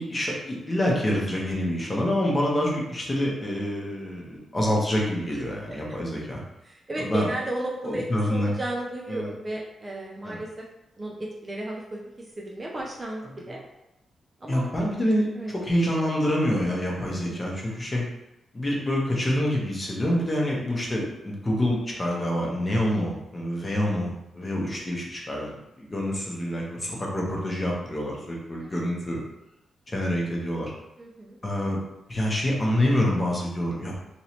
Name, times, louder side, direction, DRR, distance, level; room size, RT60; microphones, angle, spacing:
voice 1, 0.0-6.4 7.0-7.3 7.8-8.5 9.1-9.3 10.2-10.4 13.5-13.6 14.5-18.0 18.5-29.2 29.9-30.7 31.4-31.8 32.1-34.0, equal, 20° left, -3 dB, 0.7 m, -27 dB
voice 2, 6.7-8.0 8.3-10.6 11.0-13.6 14.4-14.7 15.4-15.5 17.2-17.6 28.6-28.8 31.0-31.4, right 1 dB, 20° right, -2 dB, 0.4 m, -34 dB
3.0 x 2.9 x 2.8 m, 0.90 s
wide cardioid pair, 150°, 0 cm